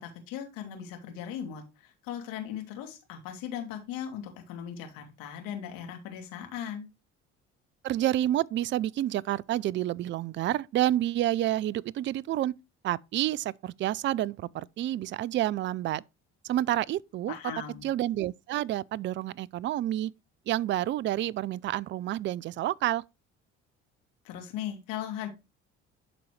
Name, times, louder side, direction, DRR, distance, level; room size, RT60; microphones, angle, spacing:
voice 1, 0.0-6.8 17.3-17.9 24.2-25.3, left 9 dB, 70° left, 2.3 m, -38 dB
voice 2, 7.8-12.5 12.8-16.0 16.4-17.3 17.8-20.1 20.5-23.0, right 13 dB, 35° right, 0.4 m, -29 dB
11.0 x 4.0 x 3.2 m
hypercardioid pair, 60°, 35 cm